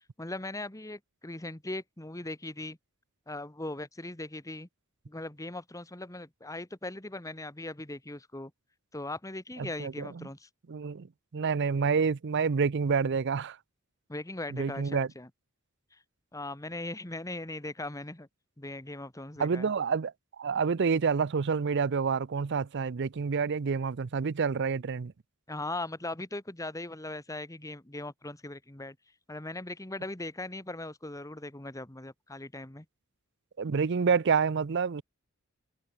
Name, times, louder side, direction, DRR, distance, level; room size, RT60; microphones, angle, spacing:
voice 1, 0.2-2.8 3.3-4.7 5.1-8.5 8.9-10.5 14.1-15.3 15.9-16.0 16.3-18.3 18.6-19.7 25.5-29.0 29.3-32.8, left 2 dB, 15° left, 1.5 m, -39 dB
voice 2, 9.6-10.3 10.7-11.1 11.3-13.6 14.5-15.1 19.4-25.1 33.6-35.0, right 5 dB, 50° right, 0.5 m, -28 dB
head